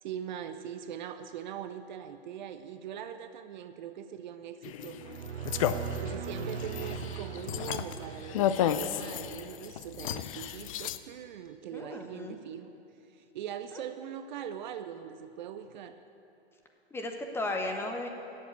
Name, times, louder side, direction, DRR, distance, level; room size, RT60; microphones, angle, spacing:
voice 1, 0.0-5.2 6.0-12.7 13.1-16.0, right 9 dB, 45° right, 10 dB, 0.6 m, -41 dB
sound 1, 4.6-11.0, left 10 dB, 30° left, 0.4 m, -33 dB
sound 2, 4.9-9.2, right 8 dB, 75° right, 0.7 m, -40 dB
voice 2, 11.7-12.4 13.7-13.8 16.9-18.1, left 2 dB, 5° left, 3 dB, 0.8 m, -35 dB
12.5 x 7.6 x 9.4 m, 2.8 s
hypercardioid pair, 135°, 34 cm